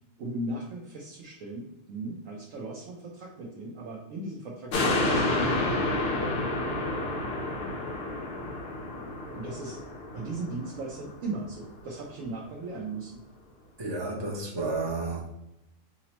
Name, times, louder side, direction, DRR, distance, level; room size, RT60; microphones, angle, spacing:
voice 1, 0.2-6.3 9.4-9.8 10.1-13.2, right 2 dB, 80° right, -2 dB, 1.0 m, -37 dB
sound 1, 4.7-11.4 11.8-11.9, left 2 dB, 60° left, 0.8 m, -30 dB
voice 2, 13.8-15.3, right 3 dB, 30° right, -2 dB, 0.5 m, -31 dB
5.0 x 2.0 x 2.9 m, 0.87 s
omnidirectional pair, 1.3 m